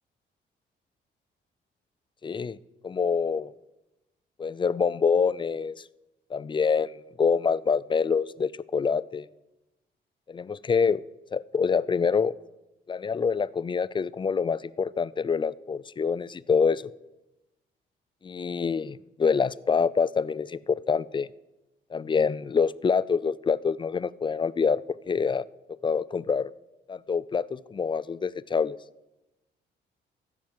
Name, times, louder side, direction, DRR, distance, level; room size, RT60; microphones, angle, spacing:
voice 1, 2.2-2.6 2.8-3.5 4.4-5.8 6.3-9.3 10.3-11.0 11.3-12.3 12.9-16.9 18.2-21.3 21.9-24.8 25.1-25.4 25.8-26.5 26.9-28.8, left 5 dB, 25° left, 18 dB, 0.4 m, -26 dB
15.0 x 6.1 x 7.5 m, 0.98 s
cardioid pair, 90°, 20 cm